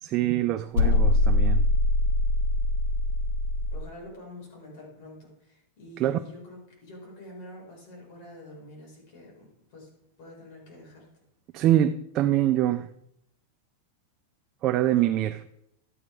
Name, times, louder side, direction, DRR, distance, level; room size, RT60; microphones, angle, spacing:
voice 1, 0.0-1.7 6.0-6.2 11.5-12.9 14.6-15.4, right 12 dB, 30° right, 0.4 m, -24 dB
sound 1, 0.7-3.8, left 2 dB, 70° left, 1.7 m, -23 dB
voice 2, 3.7-9.9 10.2-11.1, left 1 dB, 45° left, 5.3 m, -46 dB
12.5 x 8.9 x 4.8 m
supercardioid pair, 170°, 0 cm